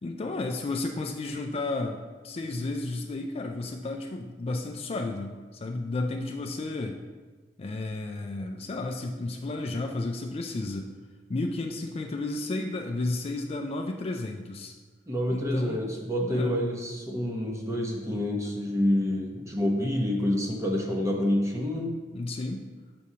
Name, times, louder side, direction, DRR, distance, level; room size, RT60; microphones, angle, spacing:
voice 1, 0.0-7.0 7.6-10.9 11.3-14.7 15.3-15.8 16.2-16.5 22.1-22.6, left 2 dB, 35° left, 4 dB, 0.4 m, -32 dB
voice 2, 15.1-21.9, left 1 dB, 15° right, 0 dB, 0.8 m, -27 dB
6.8 x 6.1 x 2.8 m, 1.3 s
head